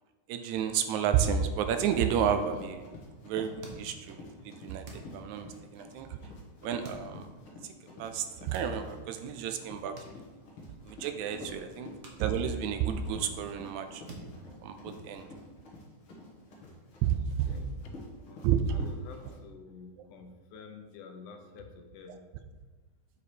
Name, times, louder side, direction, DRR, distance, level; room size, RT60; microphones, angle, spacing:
voice 1, 0.3-2.9 3.2-6.2 6.6-7.2 7.9-10.0 10.8-11.9 12.2-14.0 14.6-15.3 17.0-17.5 18.4-18.8, right 8 dB, 80° right, 8 dB, 1.8 m, -31 dB
Run, 1.9-19.4, left 2 dB, 50° left, 2.0 m, -49 dB
sound 1, 3.6-4.3 4.8-5.6 6.8-7.5 8.4-9.1 10.0-10.8 11.1-11.3 12.0-12.9 13.2-13.7 14.1-15.3, right 2 dB, 60° right, 1.1 m, -49 dB
voice 2, 5.2-5.5 11.4-11.7 14.5-14.6 15.3-15.4 17.5-22.3, left 4 dB, 85° left, 5 dB, 2.4 m, -50 dB
8.3 x 5.1 x 4.4 m, 1.3 s
omnidirectional pair, 3.5 m